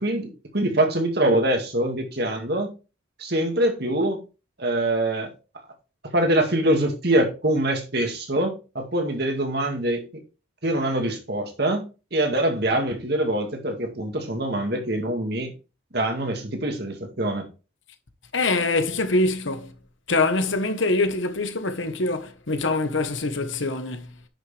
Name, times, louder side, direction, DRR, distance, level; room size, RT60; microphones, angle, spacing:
voice 1, 0.0-2.7 3.2-4.2 4.6-5.3 6.1-10.1 10.6-15.5 15.9-17.5, right 1 dB, 55° right, 2.2 m, -24 dB
voice 2, 18.3-19.7 20.1-24.1, left 2 dB, 75° left, 1.3 m, -24 dB
10.0 x 6.5 x 3.4 m
head